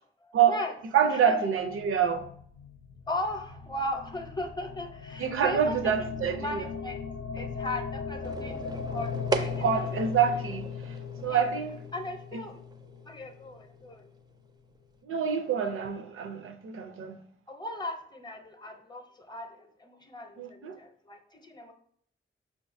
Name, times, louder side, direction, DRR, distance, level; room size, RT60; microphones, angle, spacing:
voice 1, 0.2-0.8 1.1-1.4 3.1-7.1 7.3-10.0 11.2-11.5 11.9-12.6 13.1-14.1 17.5-21.7, left 1 dB, 20° left, 0.6 m, -38 dB
voice 2, 0.9-2.3 5.2-6.6 9.6-10.7 11.2-11.8 12.3-12.4 15.0-17.2 20.4-20.7, right 7 dB, 75° right, 0.5 m, -26 dB
sound 1, 1.6-13.8, left 6 dB, 90° left, 0.4 m, -39 dB
sound 2, 8.2-14.9, right 4 dB, 20° right, 0.4 m, -38 dB
5.4 x 2.3 x 2.6 m
cardioid pair, 60°, 21 cm